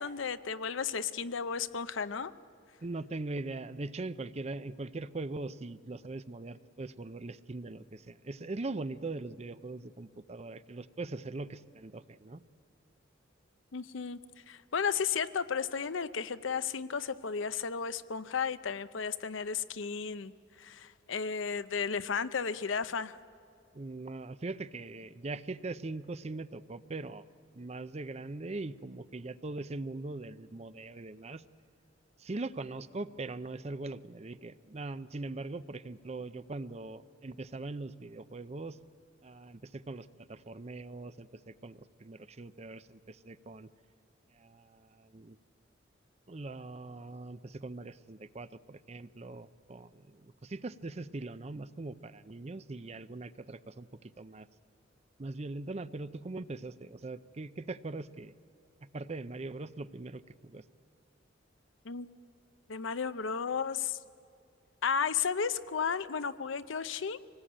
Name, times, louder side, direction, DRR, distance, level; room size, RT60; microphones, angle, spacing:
voice 1, 0.0-2.3 13.7-14.2 14.5-20.3 20.6-23.2 61.8-62.1 62.7-64.0 64.8-67.2, left 6 dB, 80° left, 13 dB, 0.7 m, -33 dB
voice 2, 2.8-12.4 23.7-27.2 27.5-31.4 32.2-38.8 39.2-43.7 44.3-45.4 46.3-54.5 55.2-58.3 58.9-60.6, right 2 dB, 35° right, 14 dB, 0.5 m, -41 dB
25.0 x 19.0 x 8.7 m, 2.5 s
head